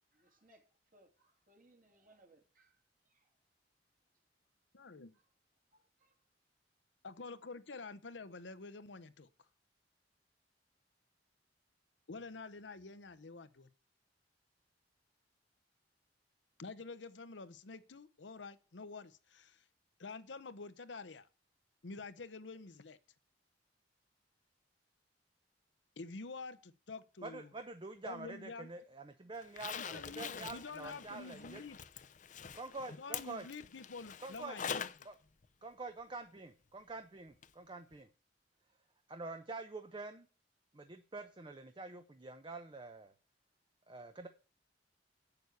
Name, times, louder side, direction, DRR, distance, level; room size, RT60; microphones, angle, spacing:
voice 1, 0.1-0.6 0.9-3.3 5.1-5.2 5.7-6.2, right 1 dB, 50° right, 2.6 m, -68 dB
voice 2, 4.7-5.2 7.0-9.3 12.1-13.7 16.6-19.6 20.0-21.3 21.8-23.0 26.0-27.5 28.0-28.7 29.7-31.8 33.0-34.9, left 4 dB, 85° left, 0.8 m, -48 dB
voice 3, 27.2-31.6 32.5-33.5 34.2-34.6 35.1-35.2 35.6-38.1 39.1-40.3 40.7-43.1 43.9-44.3, right 3 dB, 25° right, 0.7 m, -46 dB
Zipper (clothing), 29.4-35.1 35.4-35.5 37.4-37.5 37.9-38.0, left 7 dB, 45° left, 0.6 m, -45 dB
8.0 x 6.8 x 8.3 m
head